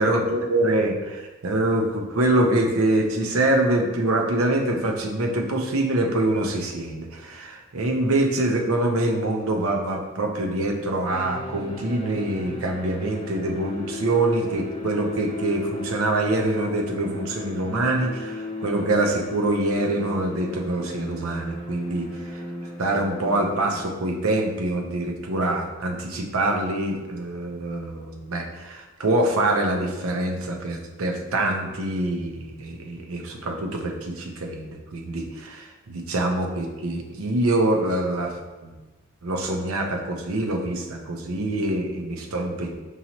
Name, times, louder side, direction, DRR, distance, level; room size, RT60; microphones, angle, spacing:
voice 1, 0.0-22.4 22.8-38.4 38.6-38.7 39.2-42.7, right 2 dB, 80° right, 3 dB, 0.7 m, -25 dB
sound 1, 11.1-23.8, left 2 dB, 25° left, 0.4 m, -37 dB
5.5 x 2.8 x 2.9 m, 1.2 s
head